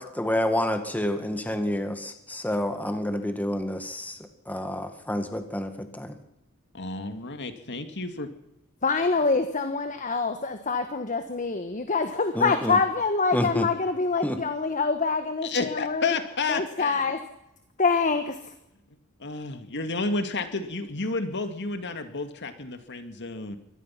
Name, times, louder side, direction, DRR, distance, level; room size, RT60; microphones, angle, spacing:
voice 1, 0.0-4.2 4.5-6.2 12.4-12.8 13.3-13.7 14.2-14.4, left 1 dB, 10° left, 7 dB, 1.9 m, -28 dB
voice 2, 6.7-8.3 15.4-17.1 19.2-23.6, left 3 dB, 55° left, 8 dB, 2.3 m, -31 dB
voice 3, 8.8-16.1 16.5-17.2 17.8-18.5, left 4 dB, 35° left, 8 dB, 1.4 m, -25 dB
24.5 x 18.0 x 5.9 m, 0.85 s
head